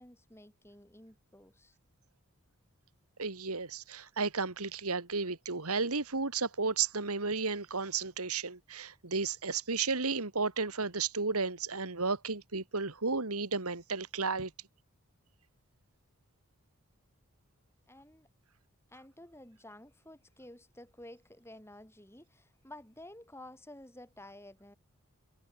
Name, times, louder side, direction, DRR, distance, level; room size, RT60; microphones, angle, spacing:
voice 1, 0.0-1.8 17.9-18.3 18.9-24.8, left 1 dB, 10° left, 6.1 m, -52 dB
voice 2, 3.2-14.5, right 4 dB, 85° right, 2.4 m, -33 dB
head